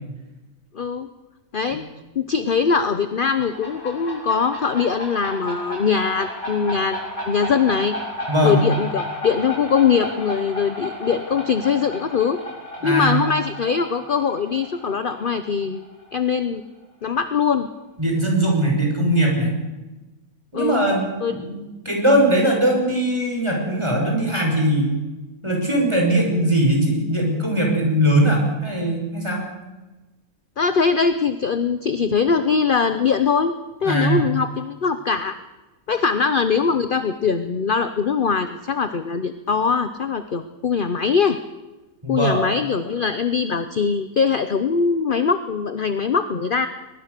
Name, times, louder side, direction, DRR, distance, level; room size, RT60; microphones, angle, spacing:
voice 1, 0.7-1.1 1.5-1.9 2.2-7.0 7.3-8.0 8.4-12.4 12.8-15.8 16.1-16.6 17.0-17.7 20.5-20.9 21.2-21.3 30.6-33.6 33.8-35.3 35.9-41.4 42.1-46.7, left 6 dB, 40° left, 10 dB, 0.9 m, -21 dB
sound 1, 3.0-16.4, left 1 dB, 65° left, 7.3 m, -33 dB
voice 2, 8.3-8.6 12.8-13.2 18.0-19.5 20.5-24.9 25.4-29.4 33.8-34.2 42.0-42.4, right 1 dB, 20° right, 1 dB, 5.9 m, -20 dB
22.0 x 21.5 x 6.7 m, 1.1 s
omnidirectional pair, 1.6 m